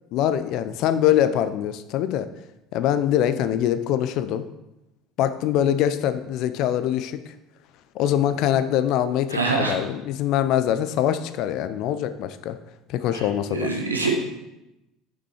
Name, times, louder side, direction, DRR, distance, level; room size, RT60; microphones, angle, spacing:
voice 1, 0.1-2.3 2.7-4.5 5.2-7.2 7.9-12.6 12.9-13.7, left 11 dB, 55° left, 12 dB, 0.5 m, -23 dB
voice 2, 9.3-9.7 13.1-13.2 13.5-14.2, right 3 dB, 85° right, 0 dB, 1.1 m, -24 dB
6.2 x 5.9 x 4.9 m, 0.93 s
figure-of-eight pair, 65°, 0 cm